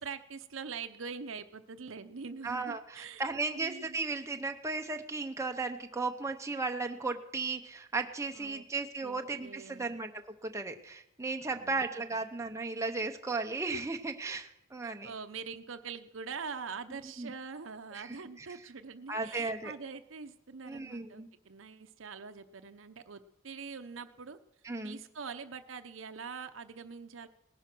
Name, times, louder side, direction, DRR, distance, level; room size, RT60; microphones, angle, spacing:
voice 1, 0.0-4.0 8.3-8.6 9.0-9.9 11.5-11.9 12.1-12.2 14.8-24.4 24.8-27.3, right 5 dB, 85° right, 8 dB, 0.8 m, -44 dB
voice 2, 2.4-10.1 10.4-15.1 17.2-17.3 17.9-18.1 18.4-18.5 19.1-19.7 20.7-21.3 24.6-25.0, right 3 dB, 15° right, 4 dB, 0.8 m, -35 dB
18.5 x 10.5 x 6.1 m, 0.83 s
head